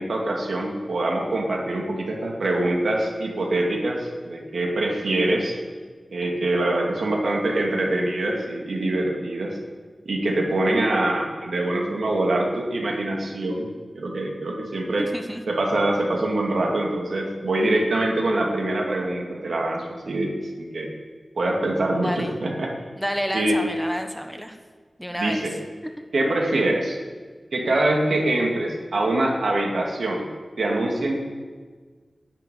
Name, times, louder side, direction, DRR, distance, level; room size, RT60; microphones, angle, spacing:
voice 1, 0.0-5.6 6.1-9.6 10.1-13.7 13.9-15.1 15.5-20.9 21.4-22.7 23.3-23.6 25.2-25.5 26.1-27.0 27.5-30.3 30.6-31.2, right 1 dB, 90° right, 0 dB, 2.5 m, -24 dB
voice 2, 15.0-15.4 22.0-22.3 23.0-24.6 25.0-25.4, equal, ahead, 5 dB, 1.2 m, -29 dB
10.5 x 8.6 x 9.3 m, 1.5 s
wide cardioid pair, 85°, 0 cm